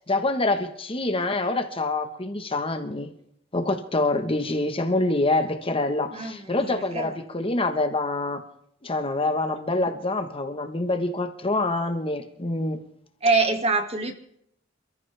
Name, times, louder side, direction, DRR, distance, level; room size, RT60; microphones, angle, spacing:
voice 1, 0.1-3.1 3.5-8.4 8.8-12.8, left 2 dB, 30° left, 7 dB, 1.3 m, -26 dB
voice 2, 6.6-7.1 13.2-14.1, right 3 dB, 30° right, 6 dB, 2.0 m, -24 dB
28.5 x 14.5 x 3.5 m, 0.70 s
head